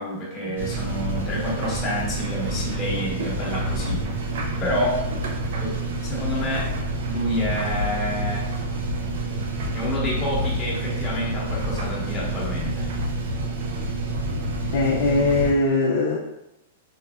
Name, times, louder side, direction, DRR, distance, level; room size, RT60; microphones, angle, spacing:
voice 1, 0.0-4.1 4.6-5.0 5.6-6.7 7.1-8.5 9.7-12.9, left 1 dB, 20° left, -5 dB, 0.9 m, -28 dB
sound 1, 0.6-15.5, right 1 dB, 70° right, 0.4 m, -28 dB
voice 2, 14.7-16.2, left 3 dB, 60° left, -1 dB, 0.4 m, -21 dB
3.5 x 2.0 x 2.2 m, 0.89 s
hypercardioid pair, 145°, 0 cm